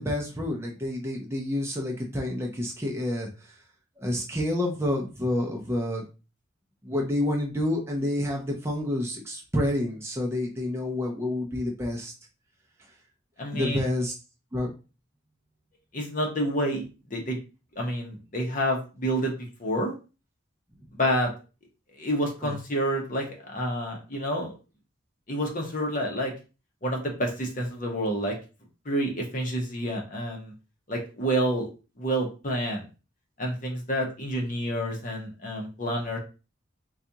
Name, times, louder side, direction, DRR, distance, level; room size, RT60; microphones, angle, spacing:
voice 1, 0.0-3.5 4.0-6.0 6.8-12.1 13.5-14.1 14.5-14.7 22.4-22.5, left 1 dB, 15° right, -1 dB, 0.5 m, -29 dB
voice 2, 13.4-13.9 15.9-16.8 17.1-17.4 17.8-19.3 19.6-19.9 20.9-21.3 21.9-24.5 25.3-26.3 26.8-28.4 28.8-30.5 30.9-31.7 32.0-32.9 33.4-36.2, equal, 40° left, 1 dB, 0.8 m, -28 dB
4.1 x 2.3 x 2.8 m, 0.31 s
head